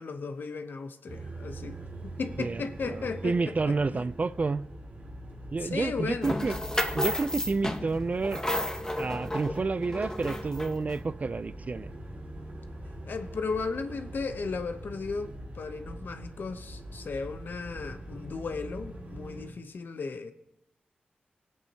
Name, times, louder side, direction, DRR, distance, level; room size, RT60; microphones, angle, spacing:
voice 1, 0.0-4.1 5.6-6.4 13.0-20.3, left 4 dB, 75° left, 0.9 m, -35 dB
sound 1, 1.1-19.5, right 1 dB, 65° right, 2.3 m, -43 dB
voice 2, 2.4-4.7 5.5-6.6 6.9-8.4 9.0-11.9, right 3 dB, 45° right, 0.5 m, -30 dB
sound 2, 6.2-10.9, left 1 dB, 20° left, 1.3 m, -32 dB
19.0 x 8.2 x 2.9 m
cardioid pair, 45°, 3 cm